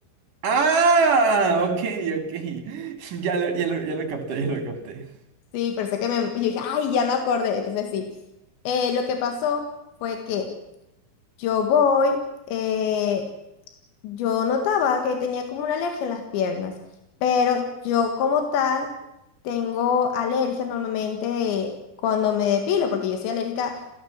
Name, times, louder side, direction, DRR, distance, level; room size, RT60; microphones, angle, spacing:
voice 1, 0.4-5.0, right 4 dB, 50° right, 6 dB, 4.3 m, -23 dB
voice 2, 5.5-8.2 8.7-9.7 10.0-10.6 11.4-12.2 12.5-13.3 14.0-16.8 17.2-18.9 19.5-23.8, left 6 dB, 85° left, 5 dB, 4.1 m, -24 dB
27.5 x 17.0 x 7.4 m, 0.88 s
omnidirectional pair, 5.0 m